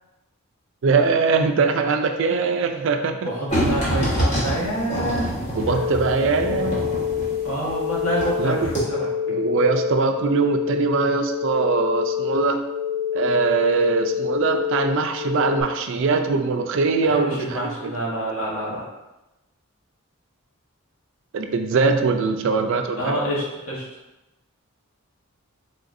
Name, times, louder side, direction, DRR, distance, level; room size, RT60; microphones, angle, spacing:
voice 1, 0.8-3.3 5.6-6.8 8.4-8.7 9.3-12.6 13.1-17.9 21.3-23.2, right 4 dB, 60° right, 6 dB, 0.4 m, -22 dB
voice 2, 3.2-5.4 5.7-5.9 7.4-9.1 17.0-18.8 23.0-23.8, right 1 dB, 75° left, -4 dB, 1.2 m, -27 dB
sound 1, 3.5-8.4 8.6-8.8, equal, 35° left, 1.2 m, -25 dB
sound 2, 5.6-15.6, left 9 dB, ahead, 0.7 m, -27 dB
3.9 x 3.8 x 2.5 m, 0.99 s
head